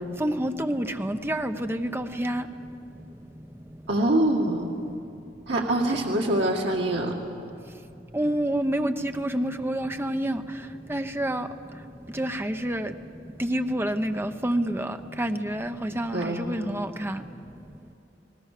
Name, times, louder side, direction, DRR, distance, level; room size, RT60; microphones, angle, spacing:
voice 1, 0.2-2.4 8.1-10.4 10.9-11.5 12.1-12.9 13.4-17.2, right 1 dB, 15° right, 7 dB, 0.9 m, -28 dB
voice 2, 3.9-4.7 5.5-7.2 16.1-16.5, right 1 dB, 75° right, -1 dB, 2.0 m, -24 dB
30.0 x 19.5 x 6.8 m, 2.7 s
head